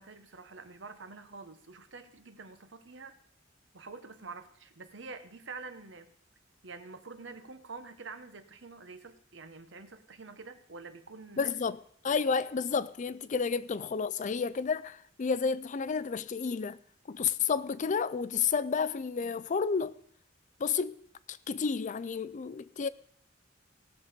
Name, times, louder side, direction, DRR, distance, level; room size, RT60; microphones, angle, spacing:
voice 1, 0.0-3.2 3.7-6.1 6.6-11.5 13.3-13.6, right 4 dB, 70° right, 1.1 m, -47 dB
voice 2, 11.4-11.8 12.0-16.8 17.1-20.0 20.6-21.0 21.3-22.9, left 5 dB, 40° left, 0.4 m, -31 dB
18.0 x 6.8 x 5.1 m
head